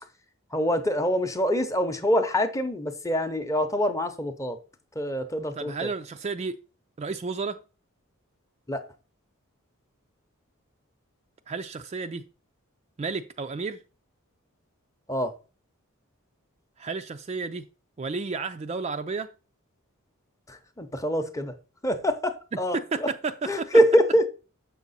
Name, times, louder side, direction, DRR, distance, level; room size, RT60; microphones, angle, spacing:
voice 1, 0.5-4.6 4.9-5.9 8.7-8.8 15.1-15.3 20.5-21.5 21.8-23.1 23.4-24.3, equal, 15° left, 0.7 m, -25 dB
voice 2, 5.6-6.6 7.0-7.6 11.5-12.2 13.0-13.8 16.8-17.7 18.0-19.3 22.7-23.7, right 4 dB, 30° right, 0.3 m, -32 dB
7.2 x 5.9 x 4.1 m
head